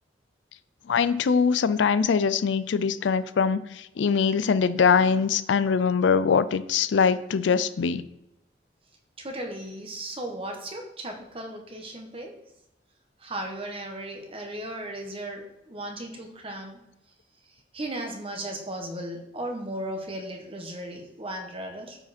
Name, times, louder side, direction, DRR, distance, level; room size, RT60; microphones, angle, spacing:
voice 1, 0.9-3.6 4.0-8.0, left 6 dB, 70° left, 15 dB, 0.4 m, -22 dB
voice 2, 9.2-12.3 13.2-16.8 17.7-22.0, right 1 dB, 30° right, 3 dB, 1.3 m, -36 dB
9.2 x 4.9 x 4.3 m, 0.89 s
head